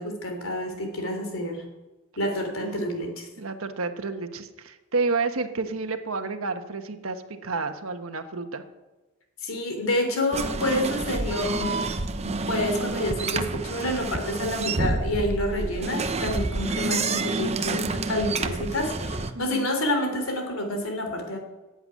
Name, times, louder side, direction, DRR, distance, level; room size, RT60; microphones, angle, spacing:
voice 1, 0.0-1.6 2.2-3.3 9.4-11.8 12.2-21.4, left 1 dB, 80° left, 4 dB, 3.3 m, -28 dB
voice 2, 3.4-8.6 14.4-14.7 19.3-19.7, right 3 dB, 85° right, 7 dB, 1.3 m, -30 dB
sound 1, 10.3-19.3, right 3 dB, 30° right, 0.8 m, -29 dB
14.5 x 8.1 x 9.6 m, 1.1 s
head